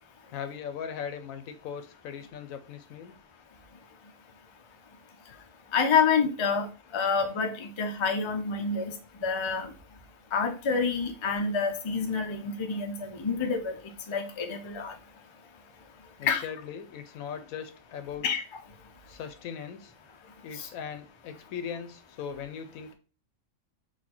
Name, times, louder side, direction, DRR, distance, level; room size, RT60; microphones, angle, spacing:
voice 1, 0.3-3.2 16.2-18.3 19.1-19.9 20.4-22.9, left 7 dB, 85° left, 10 dB, 1.1 m, -39 dB
voice 2, 5.7-6.7 6.9-8.8 9.2-9.7 10.3-13.8 14.1-14.9 16.3-16.5 18.2-18.4, left 5 dB, 40° left, 4 dB, 0.4 m, -27 dB
4.4 x 2.5 x 4.1 m, 0.35 s
omnidirectional pair, 1.4 m